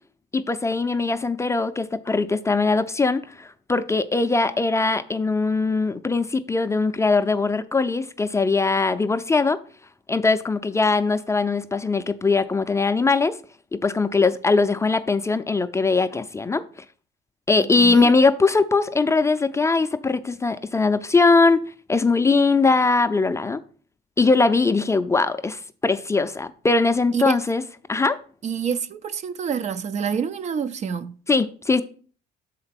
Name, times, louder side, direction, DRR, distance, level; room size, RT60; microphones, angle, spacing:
voice 1, 0.3-9.6 10.1-13.4 13.7-16.6 17.5-21.6 21.9-23.6 24.2-27.6 27.9-28.2 31.3-31.8, left 3 dB, 15° left, 0.4 m, -21 dB
voice 2, 17.6-18.1 27.1-27.4 28.4-31.2, right 7 dB, 45° right, 0.5 m, -27 dB
6.4 x 4.4 x 5.8 m
cardioid pair, 110°, 17 cm